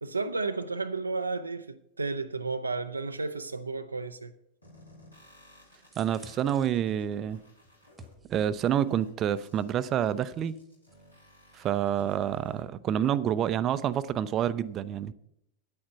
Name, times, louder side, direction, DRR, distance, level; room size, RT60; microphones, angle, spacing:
voice 1, 0.0-4.3, right 3 dB, 80° right, 0.5 m, -32 dB
sound 1, 4.6-12.6, left 1 dB, 80° left, 3.0 m, -57 dB
sound 2, 5.9-8.8 9.3-11.0 11.3-11.4, right 2 dB, 15° right, 1.3 m, -54 dB
voice 2, 6.0-7.4 8.3-10.6 11.6-15.1, right 10 dB, 30° right, 0.6 m, -28 dB
9.6 x 8.8 x 5.8 m
figure-of-eight pair, 90°, 0 cm